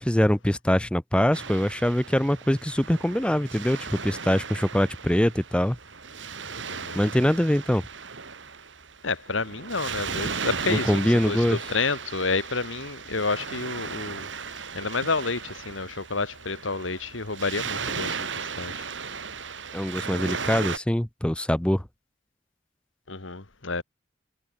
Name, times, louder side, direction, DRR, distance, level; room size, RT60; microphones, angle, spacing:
voice 1, 0.0-5.8 6.9-7.8 10.7-11.6 19.7-21.8, equal, 5° left, 0.6 m, -23 dB
Waves surf, 1.3-20.8, right 5 dB, 70° right, 2.7 m, -36 dB
voice 2, 6.7-7.0 9.0-18.9 23.1-23.8, left 4 dB, 85° left, 2.1 m, -30 dB
head